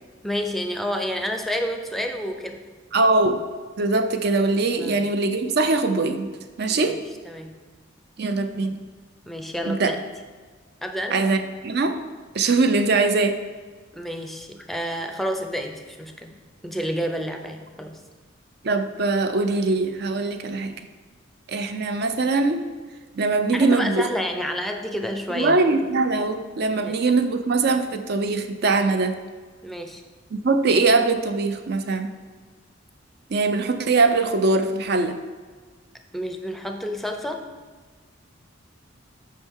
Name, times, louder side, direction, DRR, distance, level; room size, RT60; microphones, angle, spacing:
voice 1, 0.2-2.6 4.8-5.1 6.7-7.0 7.2-7.6 9.3-10.0 10.8-11.3 13.9-16.4 16.6-18.0 23.4-25.6 26.8-26.9 29.6-30.0 36.1-37.5, equal, ahead, 4 dB, 0.5 m, -29 dB
voice 2, 2.9-3.4 3.8-6.3 6.6-7.0 8.2-8.8 9.6-9.9 11.1-12.0 12.3-13.4 18.6-20.7 21.5-22.6 23.2-24.1 25.4-29.2 30.3-32.1 33.3-35.2, right 3 dB, 55° right, 8 dB, 0.5 m, -22 dB
8.3 x 5.4 x 3.6 m, 1.5 s
head